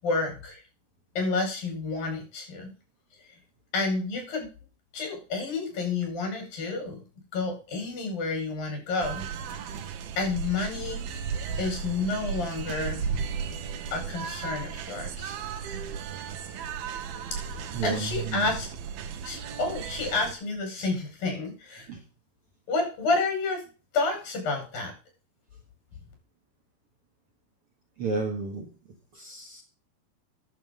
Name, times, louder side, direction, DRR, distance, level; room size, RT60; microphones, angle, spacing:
voice 1, 0.0-0.6 1.2-2.7 3.7-4.5 4.9-7.0 7.3-9.2 10.2-11.0 11.6-13.0 13.9-15.3 17.8-18.7 19.2-21.9 22.7-23.6 23.9-24.9, left 3 dB, 70° left, 2 dB, 7.2 m, -30 dB
sound 1, 9.0-20.3, right 6 dB, 85° right, 3.1 m, -35 dB
voice 2, 17.7-18.5 21.9-22.0 28.0-28.7 29.1-29.6, right 4 dB, 45° right, 2 dB, 2.2 m, -31 dB
12.0 x 7.4 x 5.2 m, 0.34 s
omnidirectional pair, 4.3 m